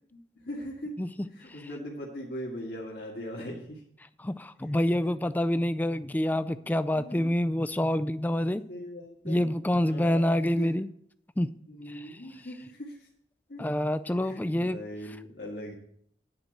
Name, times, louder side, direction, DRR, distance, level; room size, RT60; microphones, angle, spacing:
voice 1, 0.1-0.9 1.3-3.8 6.9-7.4 8.5-10.3 10.6-10.7 11.7-13.1 13.5-13.6 14.2-15.7, equal, 65° left, -5 dB, 1.8 m, -40 dB
voice 2, 4.2-8.6 9.3-10.9 11.4-11.5 11.9-12.1 13.6-14.8, left 1 dB, 10° left, 13 dB, 0.3 m, -27 dB
9.9 x 4.5 x 7.6 m, 0.67 s
head